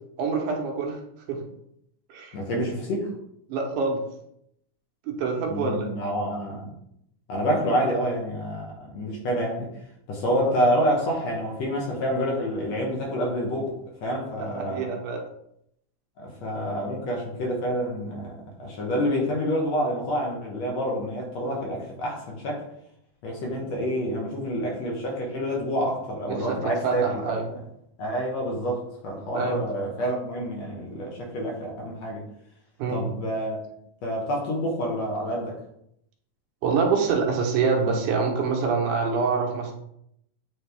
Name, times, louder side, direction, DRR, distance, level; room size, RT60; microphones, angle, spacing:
voice 1, 0.2-1.0 1.3-1.4 2.1-2.4 3.5-4.0 5.1-5.9 14.4-15.2 26.3-26.6 26.8-27.5 29.3-29.6 32.8-33.1 36.6-39.7, right 5 dB, 75° right, 1 dB, 2.3 m, -25 dB
voice 2, 2.3-3.1 5.5-6.7 7.3-9.7 10.1-14.9 16.2-22.7 23.2-27.6 28.0-32.2 32.9-33.6 34.0-35.5, equal, 65° left, -2 dB, 2.0 m, -28 dB
9.0 x 3.5 x 3.4 m, 0.74 s
omnidirectional pair, 3.8 m